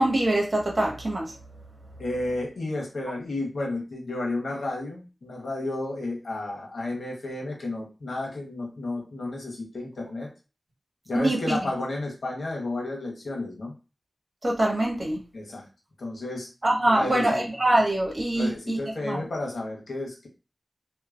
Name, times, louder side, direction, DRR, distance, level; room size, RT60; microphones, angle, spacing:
voice 1, 0.0-1.3 11.1-11.7 14.4-15.2 16.6-18.8 19.0-19.2, right 1 dB, 45° right, -2 dB, 1.4 m, -24 dB
voice 2, 2.0-10.3 11.1-13.7 15.3-15.6 16.0-16.5 16.9-17.4 18.3-20.3, left 2 dB, 90° left, -1 dB, 1.1 m, -32 dB
3.2 x 2.8 x 2.4 m, 0.32 s
cardioid pair, 40°, 0 cm